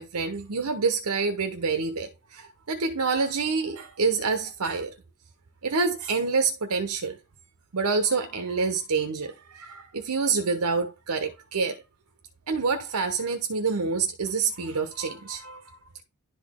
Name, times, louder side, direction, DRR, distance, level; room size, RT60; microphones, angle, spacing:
voice 1, 0.0-4.9 5.6-7.2 7.7-11.8 12.5-15.8, right 4 dB, 85° right, 0.9 m, -27 dB
11.0 x 4.0 x 3.6 m
head